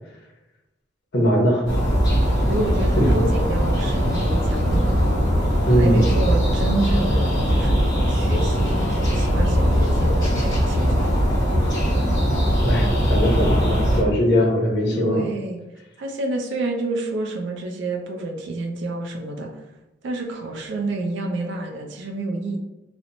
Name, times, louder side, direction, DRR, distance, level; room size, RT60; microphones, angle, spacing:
voice 1, 1.1-1.7 3.0-3.2 5.7-6.0 12.6-15.2, equal, 60° left, -1 dB, 0.7 m, -20 dB
sound 1, 1.7-14.0, equal, 20° left, 1.1 m, -20 dB
voice 2, 2.5-4.9 5.7-7.8 8.1-8.8 9.1-11.1 14.9-15.6 16.0-19.6 20.0-22.6, right 2 dB, 65° right, 2 dB, 0.3 m, -29 dB
2.8 x 2.0 x 2.5 m, 1.0 s
head